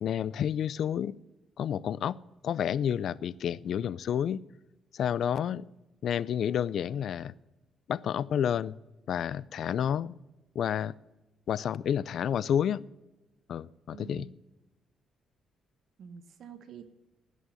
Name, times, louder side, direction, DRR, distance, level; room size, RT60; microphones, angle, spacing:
voice 1, 0.0-1.2 1.6-2.2 2.4-4.4 4.9-5.6 6.0-7.3 7.9-8.8 9.1-10.1 10.5-10.9 11.5-12.8 13.5-14.3, left 9 dB, 65° left, 20 dB, 0.5 m, -30 dB
voice 2, 13.9-14.3 16.0-16.9, right 6 dB, 65° right, 7 dB, 1.4 m, -46 dB
16.5 x 6.5 x 9.0 m, 1.0 s
cardioid pair, 90°, 0 cm